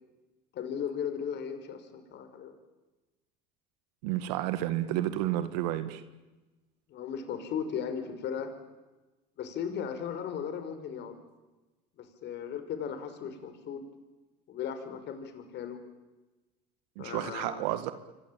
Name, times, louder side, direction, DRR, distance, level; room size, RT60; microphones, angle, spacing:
voice 1, 0.5-2.5 6.9-8.5 9.4-11.2 12.0-13.8 14.5-15.8 17.0-17.6, left 7 dB, 55° left, 9 dB, 5.5 m, -36 dB
voice 2, 4.0-6.0 17.0-17.9, right 13 dB, 80° right, 11 dB, 1.9 m, -31 dB
27.5 x 24.0 x 9.1 m, 1.1 s
supercardioid pair, 90°, 21 cm